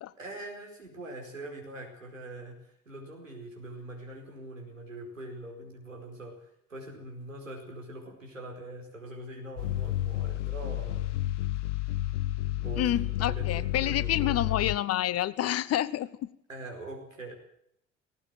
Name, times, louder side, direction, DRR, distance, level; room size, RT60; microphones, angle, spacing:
voice 1, 0.2-11.1 12.6-14.5 16.5-17.3, right 2 dB, 85° right, 1 dB, 4.8 m, -43 dB
sound 1, 9.6-14.8, left 15 dB, 70° left, 0.8 m, -31 dB
voice 2, 12.8-16.3, left 12 dB, 40° left, 18 dB, 1.1 m, -28 dB
18.5 x 18.0 x 7.7 m, 0.70 s
figure-of-eight pair, 60°, 38 cm